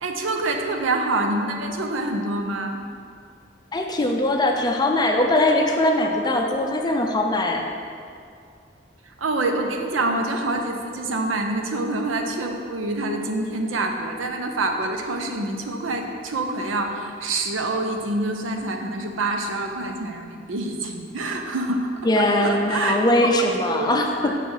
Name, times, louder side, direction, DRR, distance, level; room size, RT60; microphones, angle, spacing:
voice 1, 0.0-2.8 9.1-21.9 22.2-23.0 23.4-23.9 24.2-24.3, right 2 dB, 85° right, 4 dB, 0.7 m, -26 dB
voice 2, 3.7-7.6 22.0-24.3, left 1 dB, 20° left, 2 dB, 0.5 m, -21 dB
6.1 x 4.5 x 5.5 m, 2.3 s
head